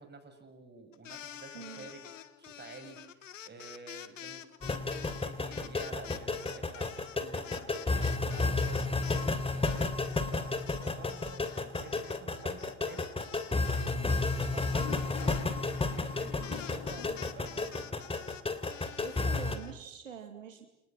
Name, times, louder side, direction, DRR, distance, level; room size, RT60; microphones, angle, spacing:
voice 1, 0.0-2.1 2.4-8.9 9.5-9.9 10.3-13.0 13.7-17.9, right 4 dB, 25° right, 7 dB, 7.0 m, -50 dB
sound 1, 0.9-9.3 9.6-19.7, left 10 dB, 80° left, 1.4 m, -48 dB
voice 2, 1.5-1.9 19.0-20.7, right 7 dB, 80° right, 5 dB, 2.5 m, -45 dB
sound 2, 4.6-19.6, left 3 dB, 15° left, 3.1 m, -32 dB
Toilet flush, 14.4-17.5, left 13 dB, 60° left, 2.3 m, -45 dB
29.5 x 29.5 x 6.3 m, 0.85 s
figure-of-eight pair, 65°, 38 cm